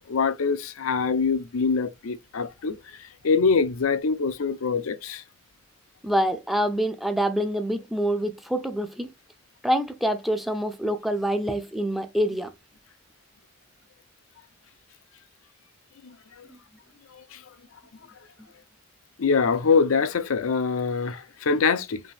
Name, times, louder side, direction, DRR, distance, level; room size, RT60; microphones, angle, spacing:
voice 1, 0.1-5.2 16.0-16.5 17.1-17.4 19.2-22.0, left 5 dB, 85° left, 0.5 m, -24 dB
voice 2, 6.0-9.1 9.6-12.5 16.5-16.6, equal, ahead, 0.4 m, -26 dB
5.0 x 2.7 x 3.4 m
head